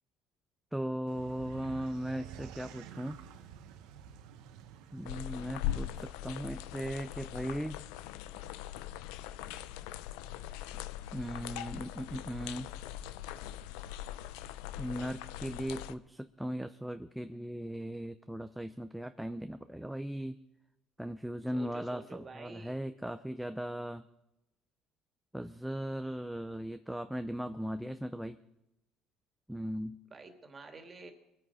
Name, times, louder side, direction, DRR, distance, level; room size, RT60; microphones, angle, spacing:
voice 1, 0.7-3.2 4.9-7.8 9.5-9.7 11.1-12.7 14.8-20.4 21.0-24.0 25.3-28.4 29.5-30.0, equal, 5° right, 9 dB, 0.5 m, -38 dB
sound 1, 1.1-6.1, right 9 dB, 85° right, 1.2 m, -50 dB
sound 2, 5.0-15.9, left 12 dB, 90° left, 0.6 m, -41 dB
voice 2, 21.5-22.8 30.1-31.1, right 3 dB, 30° right, 5 dB, 2.4 m, -49 dB
23.5 x 9.0 x 4.9 m, 0.88 s
cardioid pair, 110°, 0 cm